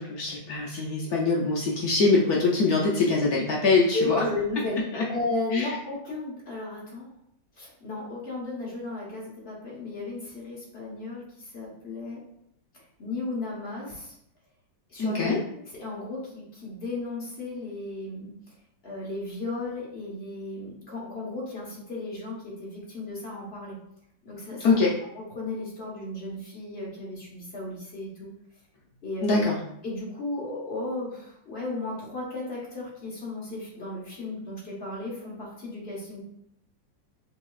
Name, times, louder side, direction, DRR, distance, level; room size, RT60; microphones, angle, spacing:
voice 1, 0.0-4.2 4.9-5.0 5.5-5.8 15.0-15.4 24.6-25.0 29.2-29.6, left 3 dB, 70° left, -2 dB, 0.9 m, -23 dB
voice 2, 3.9-4.8 5.1-7.1 7.6-12.2 12.7-14.2 14.9-15.3 15.7-18.3 18.8-23.8 24.2-24.8 25.1-28.3 29.0-29.5 29.8-36.2, left 2 dB, 40° left, -4 dB, 1.1 m, -34 dB
6.2 x 2.8 x 2.3 m, 0.73 s
omnidirectional pair, 2.1 m